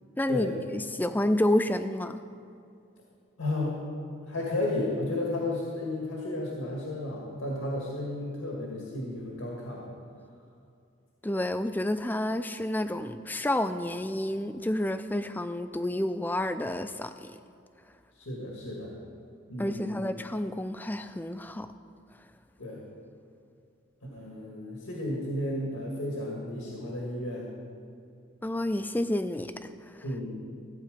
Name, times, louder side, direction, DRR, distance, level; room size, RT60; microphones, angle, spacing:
voice 1, 0.2-2.2 11.2-17.1 19.6-21.7 28.4-30.0, left 1 dB, 10° left, 10 dB, 0.3 m, -29 dB
voice 2, 3.4-3.8 4.3-9.8 18.2-18.9 19.5-20.0 22.6-22.8 24.0-27.5 30.0-30.3, left 1 dB, 85° left, -3 dB, 1.9 m, -33 dB
15.0 x 8.4 x 5.1 m, 2.4 s
head